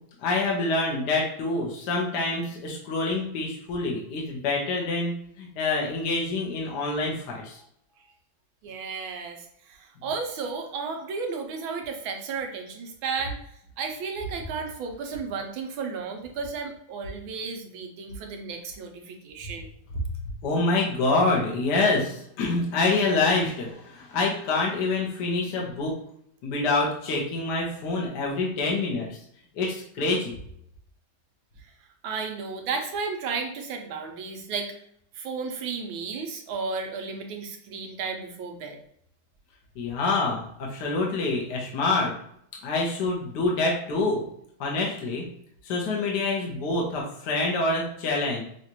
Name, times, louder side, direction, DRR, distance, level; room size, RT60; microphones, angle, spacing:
voice 1, 0.2-7.6 20.4-25.9 26.4-29.2 29.5-30.3 39.7-42.1 42.6-44.2 44.6-45.2 45.6-48.4, left 3 dB, 60° left, -2 dB, 1.4 m, -26 dB
voice 2, 8.6-13.4 13.8-19.7 32.0-34.7 35.2-38.8, right 5 dB, 80° right, 4 dB, 1.5 m, -33 dB
5.9 x 2.4 x 2.9 m, 0.71 s
omnidirectional pair, 2.3 m